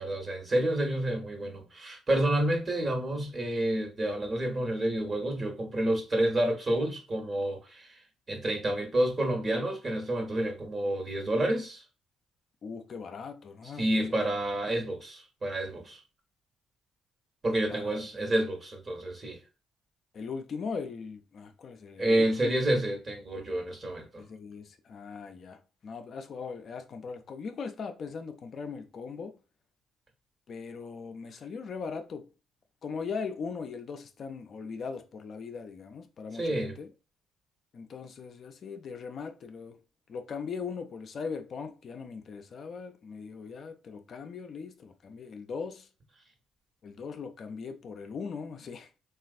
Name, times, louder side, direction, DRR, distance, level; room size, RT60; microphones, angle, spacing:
voice 1, 0.0-8.0 8.3-11.8 13.8-16.0 17.4-19.4 22.0-24.2 36.3-36.7, right 1 dB, 35° right, 1.1 m, -29 dB
voice 2, 12.6-14.3 14.7-14.8 17.7-18.0 20.1-22.5 24.2-29.4 30.5-32.3 32.8-36.9 37.7-39.8 40.1-45.9 46.8-48.9, left 5 dB, 55° left, 0.4 m, -39 dB
3.1 x 2.4 x 2.4 m
supercardioid pair, 70°, 0 cm